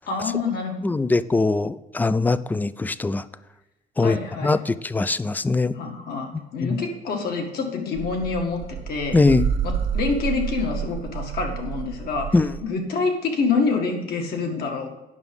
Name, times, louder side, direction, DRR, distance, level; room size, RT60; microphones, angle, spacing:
voice 1, 0.1-0.7 4.0-4.6 5.7-9.2 9.6-12.3 12.6-14.9, left 4 dB, 65° left, 3 dB, 1.8 m, -26 dB
voice 2, 0.8-3.2 4.0-5.8 6.6-6.8 9.1-9.4 12.3-12.5, left 3 dB, 10° left, 16 dB, 0.3 m, -21 dB
sound 1, 8.0-12.6, right 8 dB, 70° right, 0.9 m, -29 dB
9.6 x 6.0 x 5.3 m, 1.0 s
cardioid pair, 110°, 17 cm